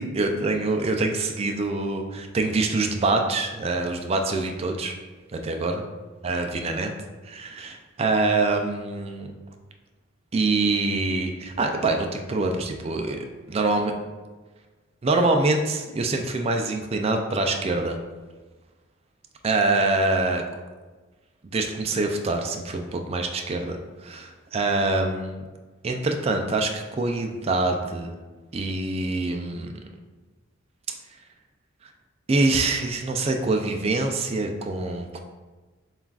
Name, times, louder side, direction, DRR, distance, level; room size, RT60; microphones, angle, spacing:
voice 1, 0.0-4.9 5.3-5.8 6.2-6.9 7.2-9.4 10.3-13.9 15.0-18.0 19.4-20.4 21.5-25.5 25.8-28.1 28.5-29.7 32.3-35.2, right 2 dB, 30° right, 4 dB, 0.3 m, -25 dB
7.1 x 2.4 x 2.3 m, 1.3 s
head